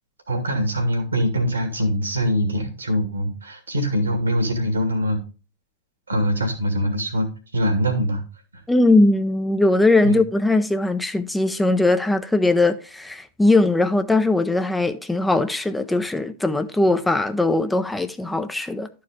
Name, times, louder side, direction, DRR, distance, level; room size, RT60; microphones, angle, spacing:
voice 1, 0.3-5.2 6.1-8.2 10.0-10.2, equal, 80° right, 2.1 m, -23 dB
voice 2, 8.7-18.9, left 2 dB, 5° left, 0.6 m, -20 dB
12.0 x 4.7 x 3.6 m
figure-of-eight pair, 95°, 0 cm